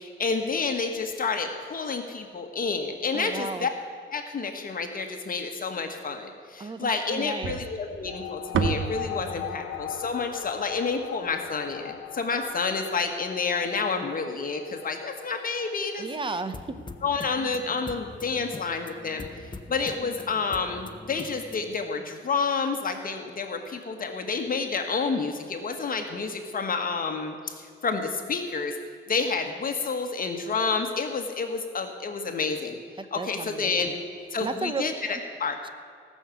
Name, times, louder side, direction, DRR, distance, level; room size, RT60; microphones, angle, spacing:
voice 1, 0.0-3.7 4.1-16.1 17.0-19.2 19.7-28.8 29.1-32.8 33.1-34.0 34.3-35.6, left 4 dB, 45° left, 4 dB, 1.4 m, -29 dB
voice 2, 3.1-3.7 6.6-7.6 16.0-16.8 33.0-34.0 34.4-34.9 35.6-35.7, right 4 dB, 25° right, 11 dB, 0.8 m, -34 dB
sound 1, 7.4-11.7, right 6 dB, 75° right, 1.0 m, -32 dB
sound 2, 8.1-19.0, left 12 dB, 90° left, 0.7 m, -41 dB
sound 3, 16.5-21.8, left 3 dB, 25° left, 0.8 m, -43 dB
18.0 x 6.5 x 8.3 m, 2.2 s
cardioid pair, 105°, 20 cm